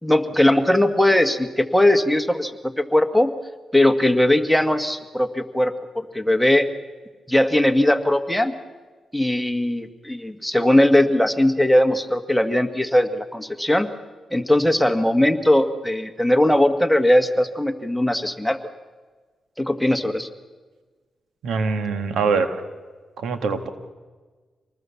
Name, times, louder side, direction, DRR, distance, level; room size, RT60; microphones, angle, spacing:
voice 1, 0.0-3.3 3.7-6.7 7.3-8.5 9.1-13.9 14.3-18.6 19.6-20.3, left 1 dB, ahead, 6 dB, 1.9 m, -19 dB
voice 2, 21.4-22.6 23.2-23.7, right 4 dB, 85° right, 8 dB, 1.9 m, -23 dB
26.5 x 20.0 x 7.2 m, 1.4 s
cardioid pair, 70°, 0 cm